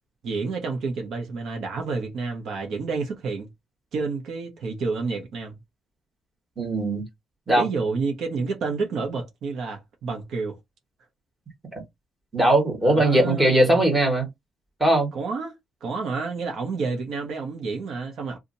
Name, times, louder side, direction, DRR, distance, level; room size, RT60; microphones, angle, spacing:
voice 1, 0.2-3.5 3.9-5.5 7.6-10.6 12.8-13.8 15.1-15.6 15.8-18.4, right 4 dB, 60° right, 1.0 m, -29 dB
voice 2, 6.6-7.0 7.5-7.6 12.3-14.3 14.8-15.1, right 1 dB, 10° right, 1.6 m, -19 dB
2.8 x 2.5 x 4.0 m
cardioid pair, 170°, 0 cm